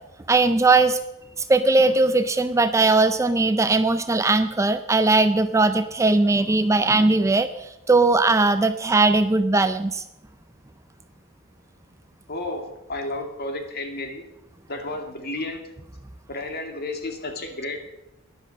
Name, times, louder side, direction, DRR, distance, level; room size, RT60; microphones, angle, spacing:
voice 1, 0.3-1.0 1.4-10.0, right 3 dB, 15° right, 10 dB, 0.4 m, -19 dB
voice 2, 12.3-14.2 14.7-15.6 16.3-17.9, left 2 dB, 50° left, 4 dB, 2.3 m, -32 dB
12.5 x 10.5 x 6.5 m, 0.88 s
head